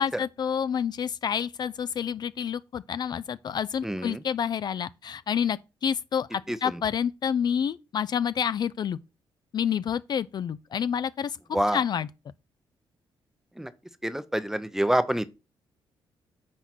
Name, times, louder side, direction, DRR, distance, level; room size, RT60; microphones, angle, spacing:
voice 1, 0.0-9.0 9.5-11.4 11.7-12.1, left 8 dB, 50° left, 0.4 m, -28 dB
voice 2, 3.8-4.2 6.5-6.6 11.5-11.8 13.6-13.7 14.0-15.4, right 1 dB, 5° right, 0.6 m, -26 dB
6.0 x 4.1 x 6.0 m
cardioid pair, 110°, 9 cm